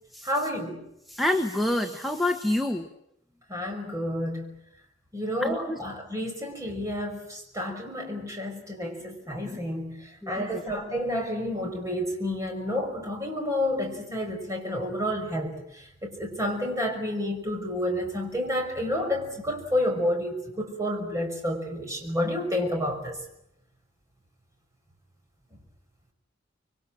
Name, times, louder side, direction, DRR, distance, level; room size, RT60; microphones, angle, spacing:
voice 1, 0.2-0.8 3.5-4.5 5.1-15.6 16.0-23.2, left 1 dB, 15° right, 2 dB, 5.8 m, -30 dB
voice 2, 1.1-2.9 5.4-5.8 9.4-9.6 10.2-10.6, left 1 dB, ahead, 6 dB, 1.3 m, -27 dB
26.0 x 23.5 x 7.6 m, 0.80 s
head